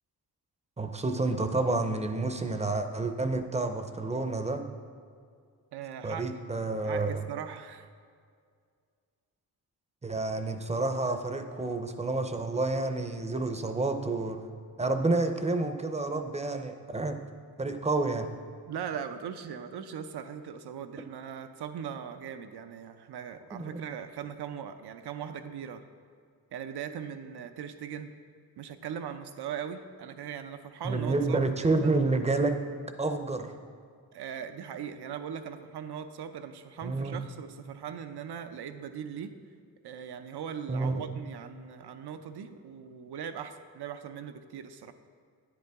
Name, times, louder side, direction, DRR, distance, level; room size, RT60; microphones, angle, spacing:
voice 1, 0.8-4.6 6.0-7.2 10.0-14.4 14.8-17.2 17.6-18.3 23.5-23.7 30.8-32.5 33.0-33.5 36.8-37.2 40.7-41.0, right 3 dB, 15° right, 7 dB, 0.5 m, -29 dB
voice 2, 5.7-6.3 6.8-7.9 18.7-25.8 26.5-28.1 28.6-31.4 31.8-31.9 34.1-39.4 39.8-44.9, right 8 dB, 85° right, 9 dB, 0.6 m, -39 dB
9.9 x 8.3 x 3.5 m, 2.2 s
wide cardioid pair, 120°, 39 cm